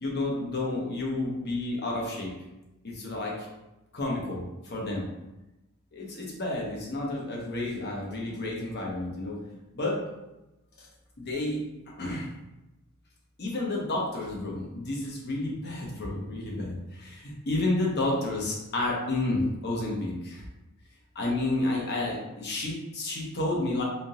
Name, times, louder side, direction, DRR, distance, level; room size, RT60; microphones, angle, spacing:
voice 1, 0.0-2.3 2.8-3.3 3.9-5.0 5.9-9.4 9.7-10.0 11.2-11.6 12.0-12.3 13.4-20.4 21.1-23.8, left 2 dB, 50° left, -2 dB, 1.0 m, -30 dB
3.6 x 2.8 x 3.7 m, 0.99 s
head